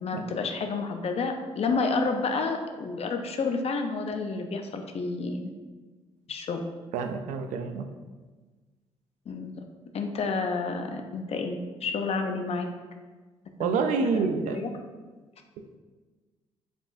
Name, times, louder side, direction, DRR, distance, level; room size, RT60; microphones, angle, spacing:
voice 1, 0.0-5.5 6.3-6.6 9.3-9.5 9.9-12.6 13.6-13.8 14.1-14.7, left 4 dB, 55° left, 5 dB, 0.6 m, -30 dB
voice 2, 6.9-7.9 13.6-14.6, right 5 dB, 80° right, 7 dB, 0.4 m, -28 dB
5.3 x 3.6 x 2.6 m, 1.3 s
supercardioid pair, 55°, 13 cm